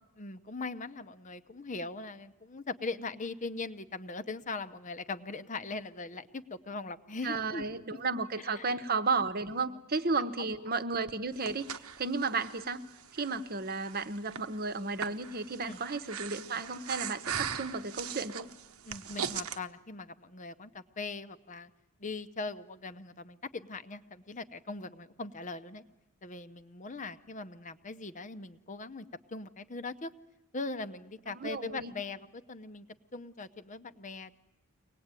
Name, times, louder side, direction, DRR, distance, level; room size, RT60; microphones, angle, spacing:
voice 1, 0.2-7.7 8.4-8.8 10.1-10.2 15.6-15.8 18.8-21.7 22.0-25.8 26.2-30.1 30.5-32.9 33.1-34.3, left 3 dB, 35° left, 12 dB, 0.8 m, -40 dB
voice 2, 7.2-11.7 12.0-12.8 13.1-18.5 31.3-31.9, right 4 dB, 45° right, 11 dB, 1.0 m, -33 dB
Breathing, 11.1-19.6, right 7 dB, 80° right, 1.1 m, -40 dB
24.0 x 19.5 x 9.0 m, 1.0 s
head